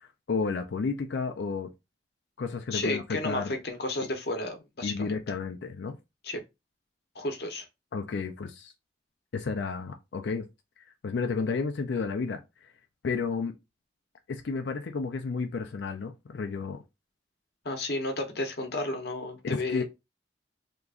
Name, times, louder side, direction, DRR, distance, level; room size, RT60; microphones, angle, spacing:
voice 1, 0.0-1.7 2.4-3.5 4.8-6.0 7.9-8.7 9.3-10.5 11.0-12.7 13.0-13.5 14.3-16.8 19.4-19.8, left 4 dB, 75° left, 0.4 m, -32 dB
voice 2, 2.7-5.1 6.2-6.4 7.1-7.7 17.6-19.8, left 2 dB, 60° left, 0.8 m, -32 dB
2.9 x 2.4 x 3.6 m
head